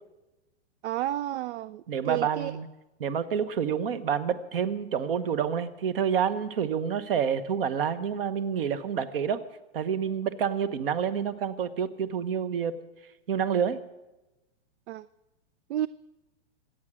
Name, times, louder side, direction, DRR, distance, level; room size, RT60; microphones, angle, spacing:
voice 1, 0.8-2.5 14.9-15.1 15.7-15.9, right 13 dB, 65° right, 0.5 m, -31 dB
voice 2, 1.9-2.7 3.0-9.4 9.7-12.7 13.3-13.8, right 7 dB, 50° right, 1.0 m, -28 dB
24.5 x 8.9 x 6.2 m
hypercardioid pair, 175°, 35 cm